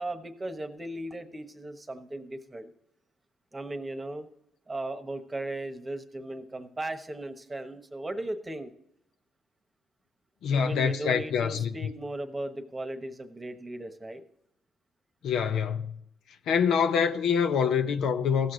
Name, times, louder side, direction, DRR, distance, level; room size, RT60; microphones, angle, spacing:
voice 1, 0.0-2.7 3.5-4.3 4.7-8.7 10.5-14.2, right 1 dB, 20° right, 1.1 m, -37 dB
voice 2, 10.4-11.7 15.2-15.9 16.5-18.5, left 7 dB, 75° left, 0.7 m, -25 dB
15.5 x 6.6 x 3.8 m
cardioid pair, 90°, 0 cm